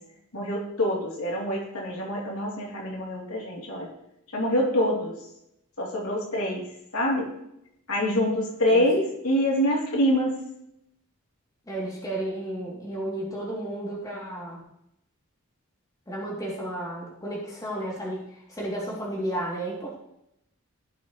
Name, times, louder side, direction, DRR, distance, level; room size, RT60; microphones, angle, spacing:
voice 1, 0.3-3.9 4.3-5.1 5.8-6.6 6.9-7.3 7.9-10.4, equal, 90° left, -3 dB, 3.4 m, -25 dB
voice 2, 11.7-14.6 16.1-20.0, right 1 dB, 15° left, -5 dB, 3.1 m, -33 dB
16.0 x 6.7 x 3.3 m, 0.79 s
head